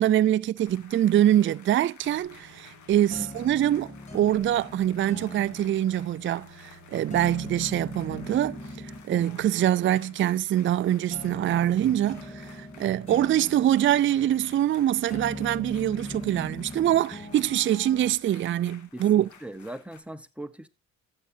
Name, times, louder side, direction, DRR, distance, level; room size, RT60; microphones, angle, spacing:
voice 1, 0.0-8.6 9.1-19.3, right 12 dB, 40° right, 0.4 m, -24 dB
sound 1, 0.6-20.0, left 6 dB, 70° left, 2.3 m, -54 dB
sound 2, 2.0-18.1, left 1 dB, 25° left, 3.1 m, -42 dB
voice 2, 3.1-3.4 18.9-20.7, right 1 dB, 5° right, 1.0 m, -40 dB
13.0 x 8.6 x 2.7 m
cardioid pair, 90°, 30 cm